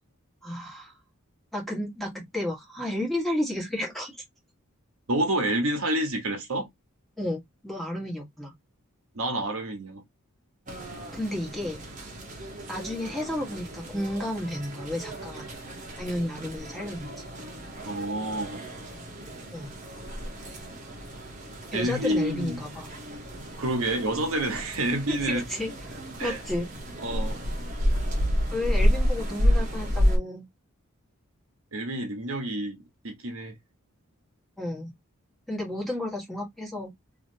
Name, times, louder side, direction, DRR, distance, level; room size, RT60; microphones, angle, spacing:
voice 1, 0.4-0.9 1.5-4.2 7.2-8.5 11.1-11.8 12.7-15.4 16.0-17.2 19.5-19.8 21.7-22.9 25.1-26.7 28.5-30.5 34.6-34.9 35.5-36.9, left 1 dB, ahead, 1.3 m, -32 dB
voice 2, 5.1-6.7 9.1-10.0 17.8-18.6 21.7-22.6 23.6-25.4 26.2-26.4 27.0-27.4 31.7-32.8 33.0-33.6, right 1 dB, 75° right, 1.1 m, -28 dB
sound 1, 10.7-30.2, equal, 35° right, 1.0 m, -31 dB
3.0 x 2.8 x 2.7 m
head